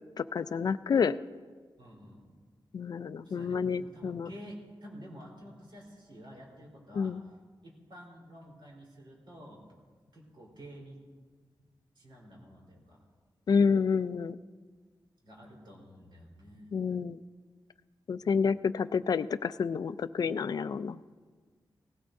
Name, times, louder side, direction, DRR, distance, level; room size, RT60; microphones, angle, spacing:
voice 1, 0.2-1.2 2.7-4.3 7.0-7.2 13.5-14.4 16.7-17.2 18.1-21.0, left 6 dB, 50° left, 14 dB, 0.3 m, -29 dB
voice 2, 1.8-2.3 3.2-7.3 7.6-9.6 10.1-11.0 12.0-13.0 15.2-16.7, equal, 65° right, -2 dB, 3.8 m, -50 dB
18.5 x 16.0 x 2.6 m, 1.5 s
wide cardioid pair, 165°, 9 cm